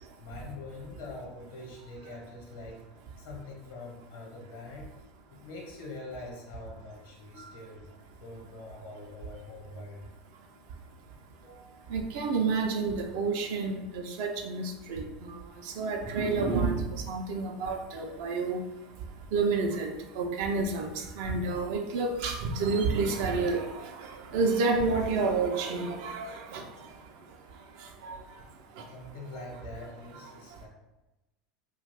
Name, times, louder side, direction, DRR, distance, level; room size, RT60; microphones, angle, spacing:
voice 1, 0.2-2.8 3.2-4.9 5.3-7.8 8.2-10.0 11.4-11.8 28.9-30.7, left 2 dB, 70° left, -2 dB, 0.9 m, -44 dB
voice 2, 11.9-14.6 14.9-15.3 15.8-18.6 19.3-23.7 24.3-26.6 28.0-28.2, right 4 dB, 60° right, 3 dB, 0.4 m, -29 dB
2.4 x 2.2 x 3.3 m, 1.0 s
figure-of-eight pair, 75°, 0 cm